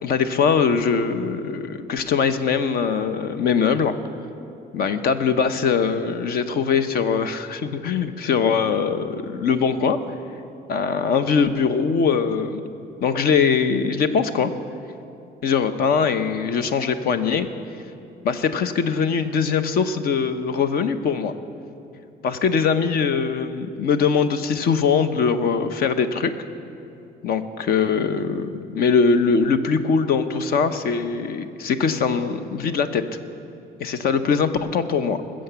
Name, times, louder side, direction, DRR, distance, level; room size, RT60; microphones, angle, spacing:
voice 1, 0.0-4.0 4.7-10.0 10.7-12.6 13.0-14.5 15.4-17.5 18.2-21.3 22.2-26.3 27.2-33.0 33.8-35.2, left 6 dB, 55° left, 10 dB, 0.8 m, -21 dB
20.5 x 7.7 x 6.9 m, 2.6 s
cardioid pair, 155°, 18 cm